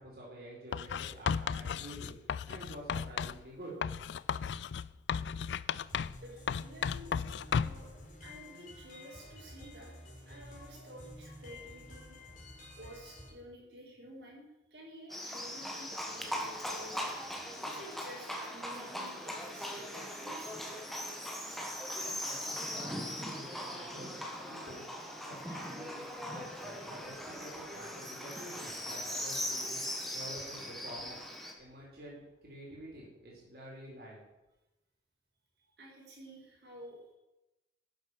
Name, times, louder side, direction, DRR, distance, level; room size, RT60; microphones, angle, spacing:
voice 1, 0.0-3.7 22.0-24.1 24.4-24.8 25.2-31.2 31.6-34.2, right 1 dB, 60° right, -4 dB, 4.1 m, -49 dB
Writing, 0.7-3.4 3.8-6.2 6.5-7.9, left 7 dB, 80° left, 0.4 m, -34 dB
sound 1, 5.9-13.3, left 1 dB, 45° left, 5.2 m, -51 dB
voice 2, 6.2-7.1 7.4-8.0 8.2-12.1 12.7-17.1 17.6-20.6 35.8-37.1, equal, 75° right, -4 dB, 4.2 m, -51 dB
Livestock farm animals working animals, 15.1-31.5, equal, ahead, 1.5 m, -40 dB
12.0 x 7.6 x 6.0 m, 0.98 s
head